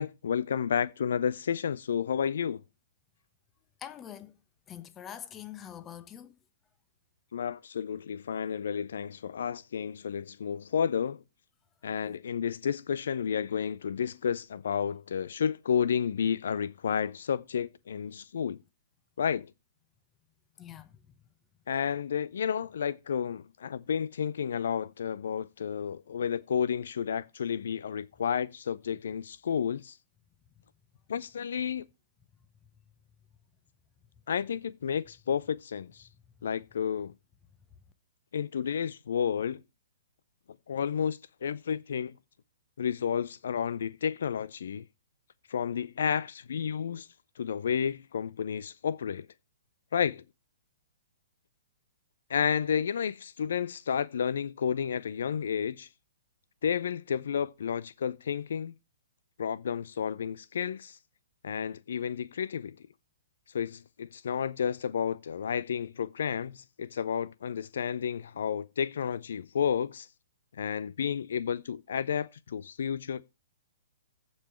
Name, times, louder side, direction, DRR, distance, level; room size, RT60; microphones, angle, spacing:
voice 1, 0.0-2.6 7.3-11.2 11.8-18.6 19.2-19.5 21.7-30.0 31.1-31.8 34.3-36.1 36.4-37.1 38.3-39.6 40.7-42.1 42.8-44.8 45.5-47.1 47.4-49.3 49.9-50.2 52.3-55.9 56.6-58.7 59.4-61.0 61.4-62.7 63.5-70.1 70.6-73.2, left 7 dB, 60° left, 0.5 m, -31 dB
voice 2, 3.8-4.3 4.7-6.3 20.6-20.9, left 10 dB, 20° left, 1.1 m, -44 dB
15.0 x 5.5 x 4.3 m
figure-of-eight pair, 120°, 0 cm